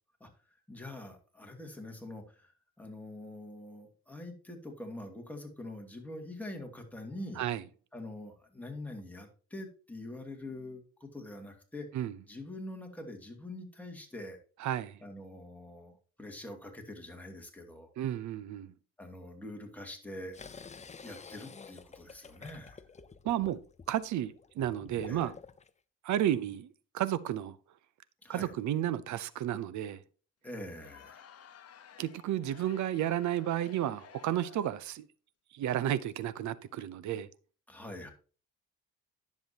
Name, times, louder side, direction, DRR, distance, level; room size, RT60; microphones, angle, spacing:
voice 1, 0.7-2.5 2.8-7.4 7.9-11.9 12.3-14.4 15.0-17.9 19.0-20.4 21.0-22.8 25.1-25.3 28.2-28.5 30.4-31.3 37.7-38.1, left 1 dB, 5° left, 2.5 m, -44 dB
voice 2, 14.6-15.0 18.0-18.7 23.2-23.6 23.9-25.3 26.0-27.6 28.3-30.0 32.0-35.1 35.5-37.3, right 11 dB, 70° right, 0.7 m, -32 dB
sound 1, 20.3-25.7, left 5 dB, 25° left, 0.6 m, -50 dB
Crowd, 30.7-34.9, left 9 dB, 55° left, 1.0 m, -55 dB
10.5 x 7.1 x 2.9 m
cardioid pair, 90°, 30 cm